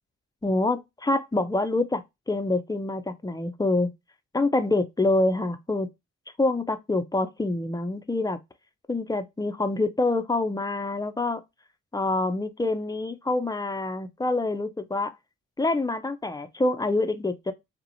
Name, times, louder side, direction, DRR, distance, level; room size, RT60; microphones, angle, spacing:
voice 1, 0.4-3.9 4.3-5.9 6.4-8.4 8.9-11.4 11.9-15.1 15.6-17.5, left 2 dB, 15° left, 0.4 m, -26 dB
2.8 x 2.0 x 2.6 m
supercardioid pair, 45°, 30 cm